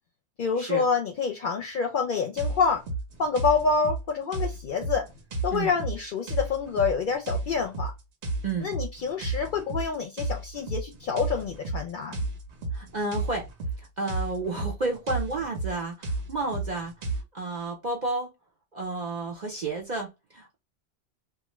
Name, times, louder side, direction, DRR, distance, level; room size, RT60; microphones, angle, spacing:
voice 1, 0.4-2.8 3.2-5.1 5.4-7.9 8.6-12.2, left 5 dB, 60° left, 0.6 m, -27 dB
sound 1, 2.4-17.2, right 2 dB, 85° right, 1.1 m, -33 dB
voice 2, 12.7-13.4 14.0-16.9 17.3-18.3 18.7-20.6, right 3 dB, 50° right, 0.7 m, -31 dB
2.5 x 2.4 x 3.0 m
omnidirectional pair, 1.1 m